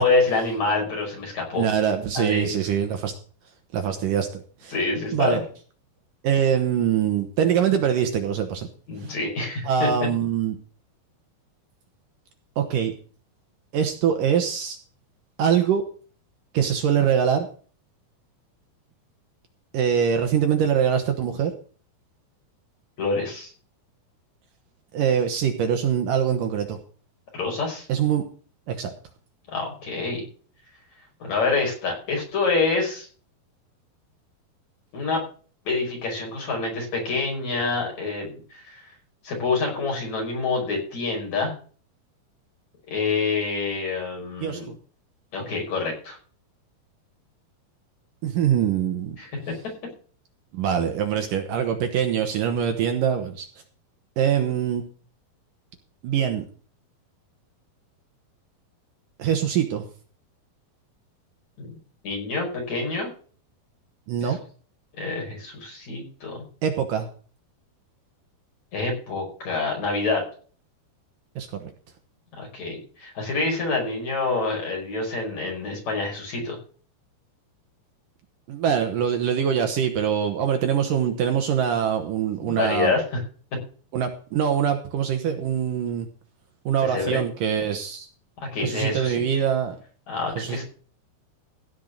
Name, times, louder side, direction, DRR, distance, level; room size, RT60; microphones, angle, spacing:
voice 1, 0.0-1.7 2.1-2.6 4.7-5.4 8.9-9.9 23.0-23.5 27.4-27.9 29.5-30.2 31.2-33.1 34.9-35.2 35.6-38.8 39.2-41.5 42.9-44.7 45.3-46.2 49.2-49.3 61.6-61.7 62.0-63.1 64.2-64.3 65.0-66.4 68.7-70.2 72.4-76.6 82.4-83.0 86.9-87.2 88.5-89.2 90.1-90.6, left 3 dB, 45° left, -1 dB, 6.7 m, -26 dB
voice 2, 1.6-3.2 3.7-4.7 5.1-5.4 6.2-8.7 9.0-9.1 9.6-10.6 12.6-12.9 13.7-14.8 15.4-15.8 16.5-17.5 19.7-21.5 24.9-26.8 27.9-28.2 28.7-28.9 44.4-44.7 48.2-49.2 50.5-53.5 54.2-54.8 56.0-56.4 59.2-59.9 64.1-64.4 66.6-67.1 71.4-71.7 78.5-82.9 83.9-86.1 86.7-88.1 88.6-89.8 90.4-90.6, right 8 dB, 65° right, 5 dB, 2.6 m, -23 dB
16.5 x 5.7 x 6.6 m, 0.41 s
omnidirectional pair, 4.5 m